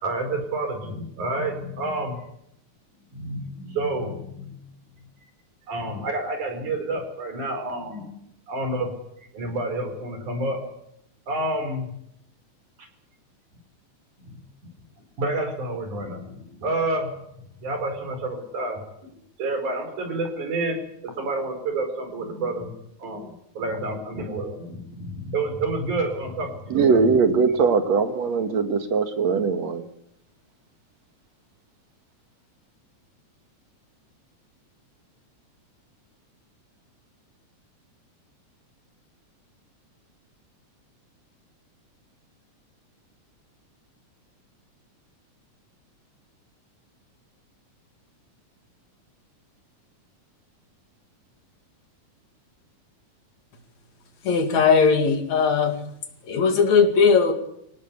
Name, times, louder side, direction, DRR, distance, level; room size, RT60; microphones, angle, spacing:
voice 1, 0.0-2.2 3.1-4.5 5.7-8.1 8.5-8.9 9.3-10.6 11.3-11.9 15.2-17.1 17.6-18.8 19.4-22.7 23.0-27.1, right 2 dB, 90° right, 6 dB, 6.1 m, -29 dB
voice 2, 26.7-29.8, right 5 dB, 65° right, 8 dB, 3.0 m, -21 dB
voice 3, 54.2-55.8 56.2-57.3, left 5 dB, 70° left, 5 dB, 3.6 m, -18 dB
25.5 x 18.0 x 8.3 m, 0.76 s
omnidirectional pair, 3.4 m